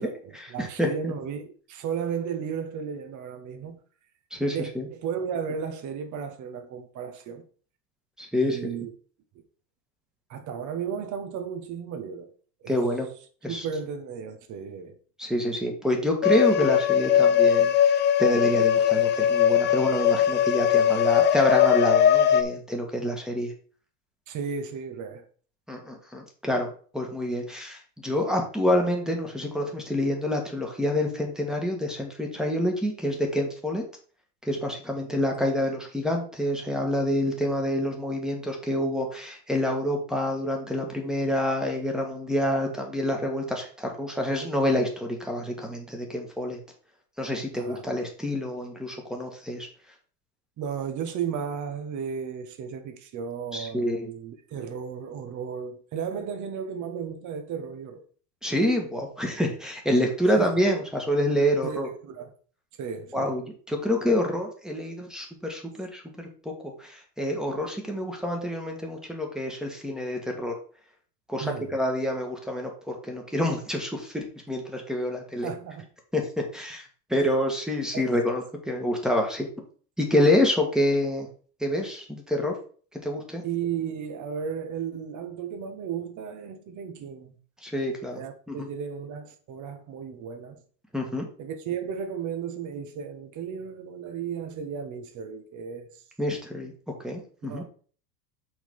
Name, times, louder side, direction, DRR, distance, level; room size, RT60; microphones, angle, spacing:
voice 1, 0.0-3.8 4.5-7.4 8.4-8.9 9.3-9.4 10.3-12.3 12.6-12.8 13.5-15.0 24.3-25.3 47.6-47.8 50.6-58.0 60.3-60.5 61.6-62.3 62.8-63.4 71.4-71.8 75.4-75.9 77.9-78.2 83.4-87.4 88.1-90.6 91.4-96.0 97.4-97.6, right 7 dB, 35° right, 1.3 m, -34 dB
voice 2, 0.6-1.1 4.3-4.9 8.2-8.6 12.7-13.1 13.4-13.6 15.2-23.5 25.7-26.7 26.9-33.8 34.4-46.6 47.2-49.7 53.5-54.1 58.4-61.9 63.1-66.3 66.6-70.5 71.3-75.5 76.1-76.2 76.5-79.5 80.0-81.3 81.6-82.5 83.0-83.4 87.6-88.2 88.5-88.7 90.9-91.2 96.2-96.7 97.0-97.6, left 1 dB, ahead, 1.6 m, -27 dB
sound 1, 16.2-22.4, left 9 dB, 25° left, 0.5 m, -20 dB
6.1 x 4.0 x 5.4 m
supercardioid pair, 120°, 48 cm